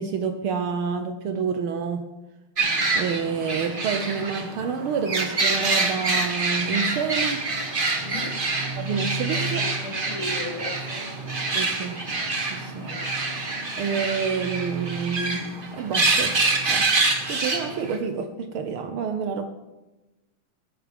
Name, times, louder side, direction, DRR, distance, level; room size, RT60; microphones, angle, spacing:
voice 1, 0.0-2.0 2.9-7.5 8.8-9.6 11.5-12.0 12.4-12.9 13.8-16.4 16.7-16.9 17.3-19.5, right 6 dB, 85° right, 6 dB, 1.1 m, -28 dB
sound 1, 2.6-18.0, right 3 dB, 50° right, 0.6 m, -26 dB
voice 2, 8.0-8.4 8.9-11.1 12.8-13.0, left 2 dB, 80° left, -6 dB, 6.0 m, -37 dB
20.0 x 9.8 x 3.5 m, 1.1 s
omnidirectional pair, 3.5 m